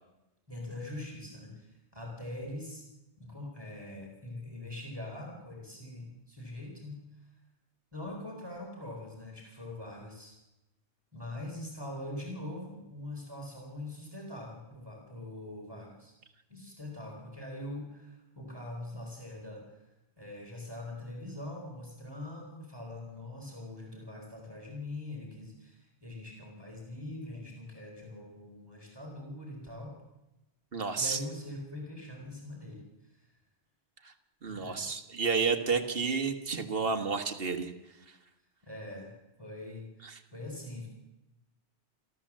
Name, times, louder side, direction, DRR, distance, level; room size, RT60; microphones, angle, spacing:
voice 1, 0.5-2.8 3.2-7.3 7.9-10.4 11.1-16.1 16.5-19.8 20.2-29.9 31.0-33.3 34.5-34.9 38.6-39.1 39.4-40.9, left 1 dB, 20° right, -1 dB, 4.3 m, -43 dB
voice 2, 30.7-31.2 34.1-34.2 34.4-37.7 40.0-40.2, right 5 dB, 55° right, 8 dB, 1.7 m, -31 dB
28.5 x 12.5 x 7.4 m, 0.98 s
omnidirectional pair, 1.1 m